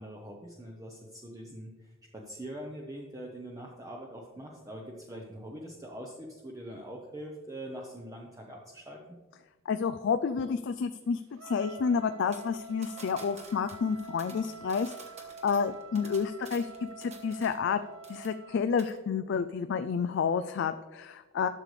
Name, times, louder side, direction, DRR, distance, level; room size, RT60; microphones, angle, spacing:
voice 1, 0.0-9.0, right 1 dB, 15° right, -1 dB, 0.8 m, -43 dB
voice 2, 9.7-14.9 15.4-17.8 18.1-21.5, left 6 dB, 60° left, 9 dB, 0.3 m, -30 dB
Trumpet, 11.3-18.7, right 4 dB, 80° right, 0.7 m, -47 dB
sound 1, 12.3-17.8 18.0-18.5 18.8-19.0, right 4 dB, 30° right, 1.2 m, -51 dB
12.0 x 6.7 x 3.2 m, 1.2 s
head